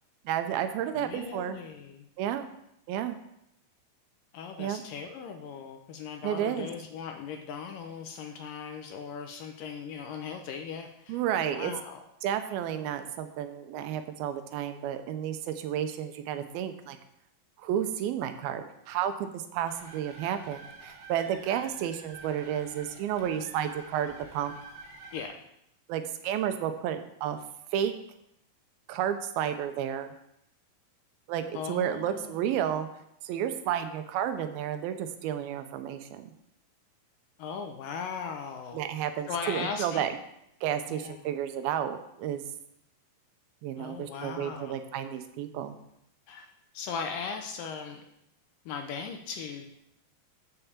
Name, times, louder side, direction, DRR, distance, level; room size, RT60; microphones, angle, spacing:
voice 1, 0.3-1.6 2.2-2.5 2.9-3.2 4.6-4.8 6.2-6.7 11.1-11.7 12.2-17.0 17.6-24.5 25.9-27.4 27.7-27.9 28.9-30.1 31.3-32.9 33.2-36.3 38.7-40.1 40.6-42.4 43.6-45.8, right 10 dB, 80° right, 9 dB, 2.5 m, -31 dB
voice 2, 1.0-2.1 4.3-11.2 11.5-12.0 25.1-25.3 31.5-32.4 37.4-38.8 39.3-40.1 40.9-41.2 43.7-44.8 46.3-48.0 48.7-49.7, left 6 dB, 75° left, 5 dB, 2.1 m, -38 dB
sound 1, 19.7-25.3, right 3 dB, 60° right, 1.8 m, -49 dB
7.1 x 6.7 x 7.1 m, 0.79 s
omnidirectional pair, 4.4 m